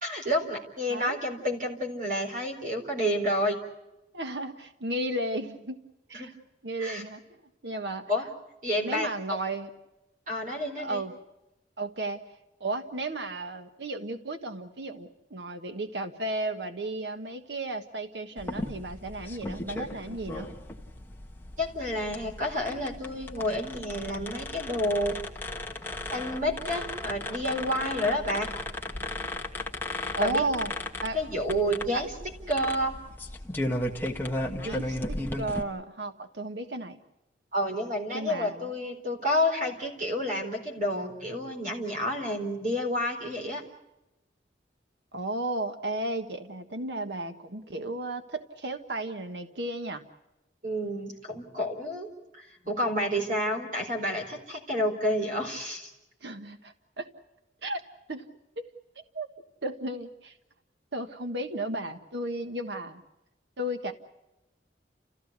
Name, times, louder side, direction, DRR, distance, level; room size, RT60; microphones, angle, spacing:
voice 1, 0.0-3.6 6.1-6.3 6.8-7.0 8.1-8.2 8.6-9.4 10.3-11.0 21.6-25.2 26.1-28.5 30.2-30.4 31.1-32.1 32.5-33.0 37.5-43.6 50.6-52.1 52.3-55.9, equal, 50° right, 4 dB, 4.2 m, -29 dB
voice 2, 4.1-5.8 6.1-6.3 6.6-8.3 8.8-9.7 10.8-11.1 11.8-12.2 12.6-20.5 30.1-30.7 31.0-31.2 31.9-32.0 34.6-37.0 38.1-38.7 45.1-50.0 56.2-57.1 57.6-57.8 58.1-58.2 58.6-58.7 59.1-59.3 59.6-60.3 60.9-63.0 63.6-63.9, right 2 dB, 80° right, 7 dB, 1.4 m, -34 dB
sound 1, 18.4-35.6, left 1 dB, 10° left, 1.5 m, -36 dB
30.0 x 15.0 x 8.2 m, 0.95 s
head